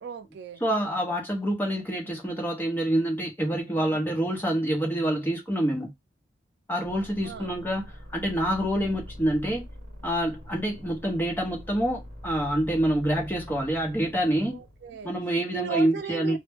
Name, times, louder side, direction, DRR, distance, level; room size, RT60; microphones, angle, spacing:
voice 1, 0.0-0.6 7.2-7.5 14.5-15.1 15.5-16.4, right 7 dB, 65° right, 0.4 m, -36 dB
voice 2, 0.6-5.9 6.7-9.7 10.0-14.6 15.0-16.4, right 1 dB, 10° left, 0.7 m, -27 dB
sound 1, 6.8-15.3, equal, 45° right, 1.0 m, -44 dB
2.1 x 2.1 x 3.3 m
head